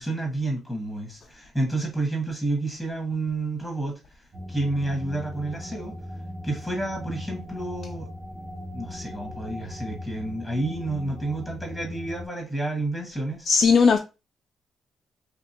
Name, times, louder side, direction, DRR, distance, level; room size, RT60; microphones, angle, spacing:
voice 1, 0.0-3.9 4.5-5.9 6.4-8.1 8.7-13.5, right 2 dB, 5° right, 1.1 m, -30 dB
sound 1, 4.3-12.3, left 1 dB, 25° right, 0.8 m, -39 dB
voice 2, 13.4-14.0, left 5 dB, 50° left, 0.3 m, -17 dB
2.8 x 2.6 x 2.8 m
cardioid pair, 115°, 0 cm